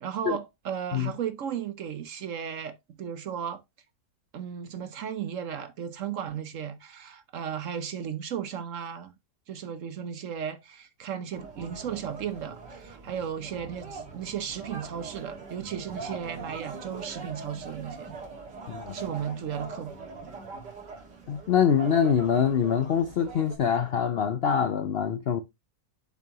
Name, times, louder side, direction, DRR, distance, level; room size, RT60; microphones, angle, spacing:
voice 1, 0.0-3.6 4.3-9.1 9.5-18.1 18.9-19.9, right 8 dB, 60° right, 0.9 m, -35 dB
sound 1, 11.3-23.6, right 4 dB, 80° right, 2.4 m, -42 dB
voice 2, 21.3-25.4, left 7 dB, 80° left, 0.5 m, -24 dB
7.2 x 6.0 x 2.9 m
omnidirectional pair, 1.8 m